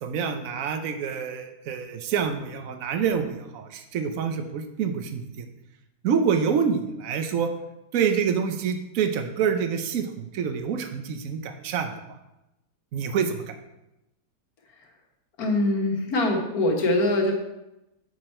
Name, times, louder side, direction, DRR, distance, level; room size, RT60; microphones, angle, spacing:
voice 1, 0.0-5.4 6.0-7.5 7.9-11.9 12.9-13.6, right 7 dB, 65° right, 7 dB, 1.1 m, -27 dB
voice 2, 15.4-17.3, left 1 dB, 70° left, 1 dB, 1.8 m, -23 dB
7.7 x 6.0 x 4.3 m, 0.93 s
omnidirectional pair, 1.7 m